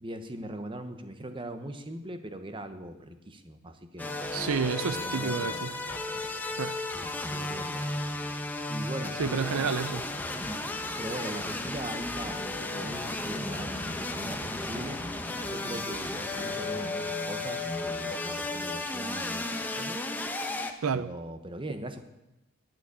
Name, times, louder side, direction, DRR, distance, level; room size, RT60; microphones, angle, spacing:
voice 1, 0.0-4.2 4.9-5.8 6.1-6.2 7.3-7.9 8.7-9.5 10.3-10.6 11.0-15.0 15.5-20.0 20.9-22.0, right 1 dB, 25° right, 8 dB, 1.1 m, -40 dB
sound 1, 4.0-20.7, left 2 dB, 10° left, 0.9 m, -34 dB
voice 2, 4.3-5.7 6.6-6.8 9.2-10.1 20.8-21.1, right 6 dB, 75° right, 14 dB, 0.5 m, -29 dB
11.5 x 9.0 x 8.4 m, 0.97 s
head